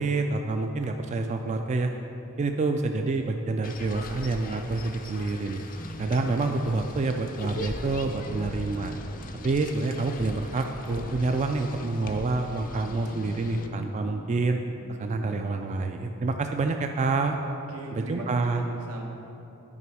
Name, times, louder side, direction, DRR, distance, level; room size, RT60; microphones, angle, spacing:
voice 1, 0.0-1.9 2.4-5.6 6.0-9.0 9.4-14.6 14.9-17.4 17.9-18.6, right 3 dB, 30° right, 5 dB, 0.3 m, -27 dB
sound 1, 3.6-13.7, left 2 dB, 40° left, 0.5 m, -40 dB
sound 2, 5.7-15.5, equal, 85° left, 0.9 m, -46 dB
voice 2, 17.5-19.0, right 2 dB, 85° right, 0 dB, 1.2 m, -39 dB
9.7 x 5.0 x 4.7 m, 2.9 s
head